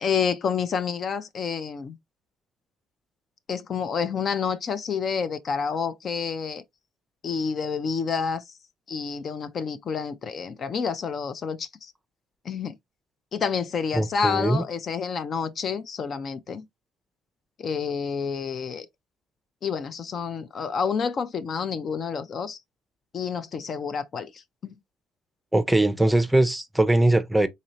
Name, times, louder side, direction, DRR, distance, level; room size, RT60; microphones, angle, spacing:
voice 1, 0.0-2.0 3.5-6.6 7.2-8.6 8.9-11.9 12.4-12.7 13.3-16.6 17.6-18.9 19.6-22.6 23.1-24.8, left 6 dB, 50° left, 0.5 m, -29 dB
voice 2, 13.9-14.6 25.5-27.5, right 1 dB, 5° right, 0.7 m, -21 dB
4.0 x 2.6 x 3.1 m
supercardioid pair, 65°, 0 cm